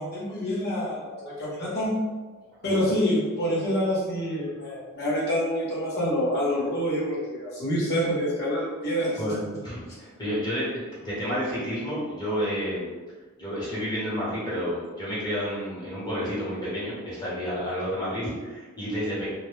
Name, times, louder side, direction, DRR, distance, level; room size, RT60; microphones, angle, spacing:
voice 1, 0.0-1.9 2.6-9.2, equal, 45° left, -6 dB, 0.8 m, -27 dB
voice 2, 2.5-2.9 9.2-10.7 10.9-12.9 13.4-19.3, equal, 20° left, -8 dB, 0.9 m, -30 dB
2.1 x 2.1 x 3.1 m, 1.3 s
head